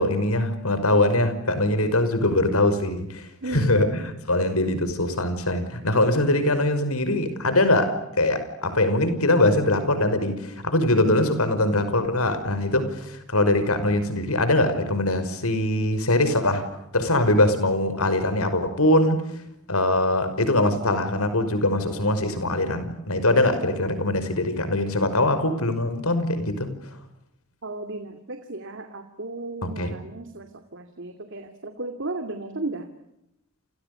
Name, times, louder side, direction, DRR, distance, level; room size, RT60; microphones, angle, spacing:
voice 1, 0.0-16.6 16.9-19.2 19.7-26.7 29.7-29.9, left 1 dB, 75° left, 11 dB, 5.8 m, -22 dB
voice 2, 3.4-4.1 10.8-11.2 27.6-30.5 30.7-32.9, right 2 dB, 55° right, 7 dB, 2.6 m, -35 dB
29.5 x 29.0 x 6.9 m, 0.82 s
head